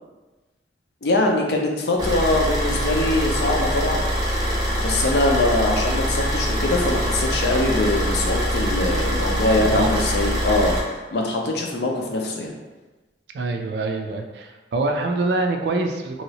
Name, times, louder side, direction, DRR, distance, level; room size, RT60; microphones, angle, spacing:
voice 1, 1.0-4.1 4.8-12.5, left 2 dB, 65° left, 1 dB, 0.5 m, -22 dB
Car / Idling, 2.0-10.8, equal, 20° right, 0.6 m, -24 dB
voice 2, 9.5-10.1 13.3-16.2, right 2 dB, 65° right, 4 dB, 0.3 m, -25 dB
3.0 x 2.8 x 2.8 m, 1.2 s
head